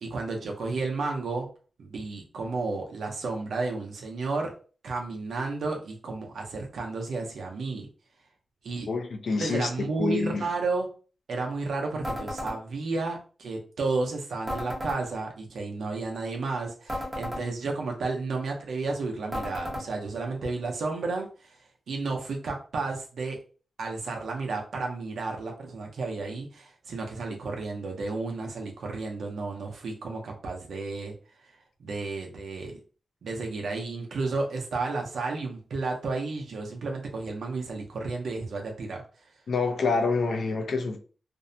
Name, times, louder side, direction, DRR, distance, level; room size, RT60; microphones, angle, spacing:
voice 1, 0.0-1.5 1.8-4.5 4.8-7.9 8.6-8.9 9.4-10.9 11.3-21.5 21.9-23.4 23.8-31.1 31.4-31.5 31.8-32.8 33.2-39.0, right 3 dB, 90° right, 1 dB, 0.6 m, -32 dB
voice 2, 8.9-9.7 10.0-10.5 39.5-41.0, left 4 dB, 65° left, 4 dB, 0.4 m, -27 dB
sound 1, 12.0-12.6 14.5-15.0 16.9-17.4 19.3-19.9, left 1 dB, 20° right, 0.7 m, -33 dB
2.6 x 2.1 x 2.6 m, 0.39 s
wide cardioid pair, 150°, 0 cm